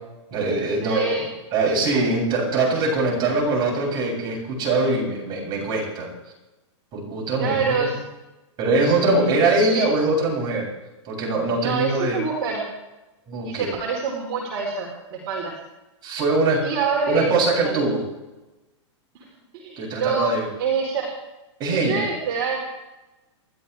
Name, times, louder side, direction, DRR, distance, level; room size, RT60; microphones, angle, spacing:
voice 1, 0.3-6.1 6.9-7.9 8.6-10.7 11.0-12.2 13.3-13.7 16.0-16.7 17.1-18.0 19.8-20.5 21.6-22.0, right 2 dB, 25° right, -3 dB, 7.9 m, -22 dB
voice 2, 0.8-1.2 7.4-7.9 9.1-9.3 11.6-12.6 13.4-15.5 16.6-17.2 17.6-17.7 19.1-19.2 19.5-20.3 20.6-21.0 21.7-22.6, right 5 dB, 45° right, -2 dB, 4.3 m, -26 dB
29.0 x 13.0 x 3.5 m, 1.0 s
hypercardioid pair, 150°, 16 cm